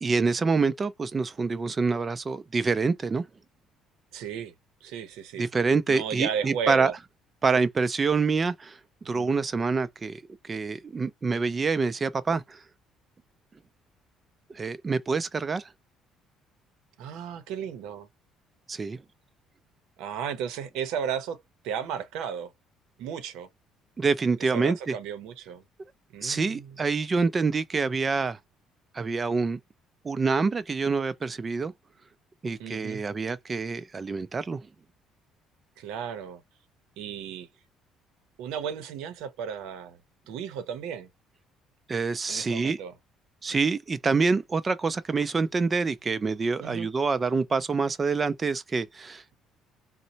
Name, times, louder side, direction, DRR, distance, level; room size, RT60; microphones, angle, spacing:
voice 1, 0.0-3.2 5.4-6.9 7.4-8.8 9.1-12.6 14.5-15.7 18.7-19.0 24.0-25.0 26.2-28.4 28.9-29.6 30.0-31.7 32.4-34.7 41.9-42.8 43.4-49.3, right 4 dB, 25° right, 0.4 m, -26 dB
voice 2, 4.1-4.5 4.8-5.5 5.9-6.9 9.1-9.3 17.0-18.1 20.0-21.4 21.6-22.5 23.0-23.5 24.4-25.6 26.1-26.7 32.6-33.0 35.8-36.4 37.0-37.5 38.4-40.0 40.3-41.1 42.3-42.9 46.6-46.9, right 8 dB, 85° right, 0.7 m, -34 dB
4.0 x 2.1 x 2.7 m
cardioid pair, 140°, 0 cm